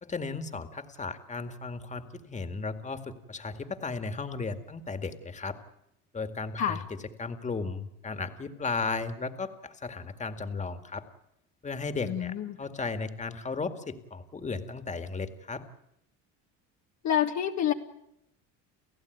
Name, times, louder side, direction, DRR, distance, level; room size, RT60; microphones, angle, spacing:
voice 1, 0.0-5.6 6.1-6.8 7.2-11.0 11.6-15.6, left 4 dB, 20° left, 8 dB, 2.0 m, -35 dB
voice 2, 12.0-12.6 17.0-17.7, left 9 dB, 50° left, 3 dB, 1.5 m, -28 dB
30.0 x 15.0 x 9.4 m, 0.82 s
cardioid pair, 125°, 35 cm